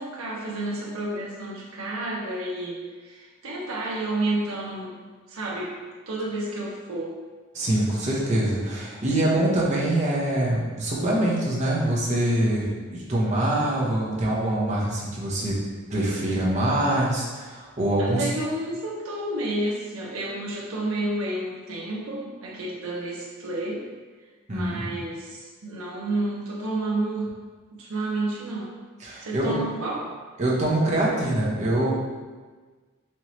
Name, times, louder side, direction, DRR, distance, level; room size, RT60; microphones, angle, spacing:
voice 1, 0.0-5.0 5.3-5.7 6.1-7.2 18.0-23.9 24.5-27.3 27.7-28.8 29.2-30.1, right 2 dB, 80° right, -4 dB, 0.6 m, -30 dB
voice 2, 7.5-15.6 15.9-18.3 24.5-24.9 29.0-29.5 30.4-31.9, right 1 dB, 35° right, -5 dB, 0.8 m, -24 dB
4.3 x 3.0 x 2.9 m, 1.4 s
head